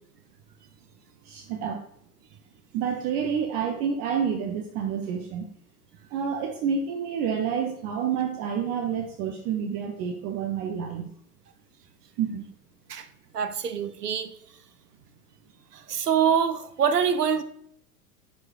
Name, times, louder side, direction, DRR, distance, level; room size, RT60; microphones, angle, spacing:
voice 1, 1.2-1.8 2.7-5.5 6.1-11.1 12.2-12.4, right 7 dB, 25° right, 4 dB, 0.5 m, -29 dB
voice 2, 13.3-14.3 15.9-17.4, right 7 dB, 75° right, 11 dB, 0.8 m, -24 dB
10.0 x 4.7 x 2.4 m, 0.70 s
figure-of-eight pair, 90°, 47 cm